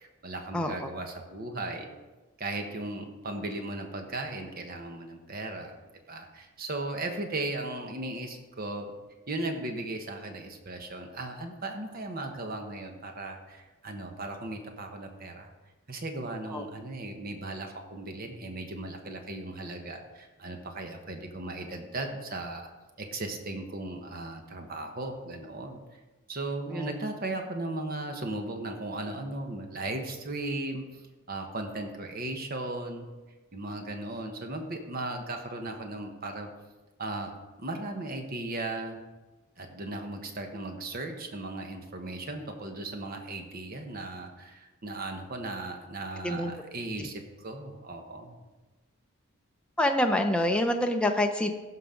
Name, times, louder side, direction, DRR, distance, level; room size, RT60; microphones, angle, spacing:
voice 1, 0.0-1.9 2.4-5.8 6.1-8.9 9.3-15.5 15.9-22.7 23.0-25.8 26.3-31.0 31.3-33.1 33.5-36.5 37.0-39.0 39.6-48.4, right 2 dB, 45° right, 4 dB, 1.2 m, -37 dB
voice 2, 0.5-0.9 16.5-16.6 26.7-26.9 46.2-46.5 49.8-51.5, left 1 dB, 5° left, 3 dB, 0.6 m, -26 dB
15.5 x 5.9 x 3.8 m, 1.2 s
head